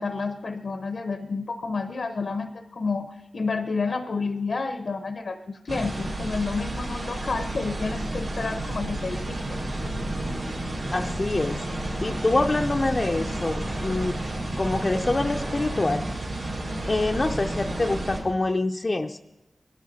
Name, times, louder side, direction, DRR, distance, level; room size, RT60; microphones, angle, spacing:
voice 1, 0.0-9.6, left 4 dB, 70° left, 8 dB, 0.7 m, -30 dB
sound 1, 5.7-18.2, right 1 dB, 75° right, 4.0 m, -31 dB
voice 2, 10.9-11.6 12.0-14.2 14.6-16.0 16.8-19.2, left 2 dB, 35° left, 4 dB, 0.5 m, -25 dB
22.5 x 11.5 x 4.1 m, 1.0 s
wide cardioid pair, 95°, 0 cm